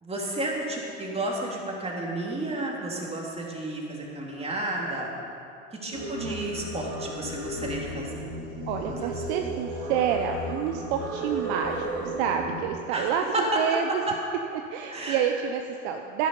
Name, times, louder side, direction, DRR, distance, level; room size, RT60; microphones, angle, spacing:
voice 1, 0.0-5.1 5.7-8.2 8.9-9.1 12.9-13.1 13.3-13.4 14.1-14.2 14.9-15.2, right 2 dB, 15° right, -2 dB, 3.1 m, -32 dB
Singing, 5.9-12.6, right 1 dB, 40° right, 3.6 m, -34 dB
voice 2, 5.9-6.4 8.7-14.0 14.7-16.3, right 8 dB, 55° right, 4 dB, 0.9 m, -29 dB
13.0 x 11.0 x 5.5 m, 2.5 s
hypercardioid pair, 75°, 39 cm